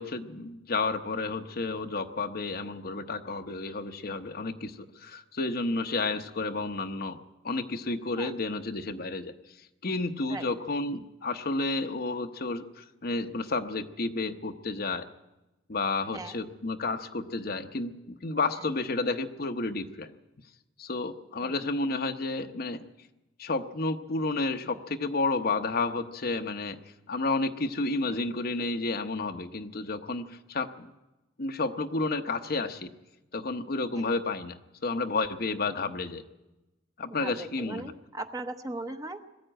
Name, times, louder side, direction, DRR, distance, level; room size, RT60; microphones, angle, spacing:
voice 1, 0.0-7.2 7.4-9.3 9.8-15.0 15.7-20.1 20.8-22.8 23.4-26.8 27.1-30.9 31.4-32.9 33.3-36.2 37.0-37.8, left 3 dB, 50° left, 7 dB, 1.0 m, -31 dB
voice 2, 37.2-39.4, right 2 dB, 20° right, 7 dB, 1.0 m, -39 dB
21.0 x 14.0 x 9.0 m, 1.0 s
head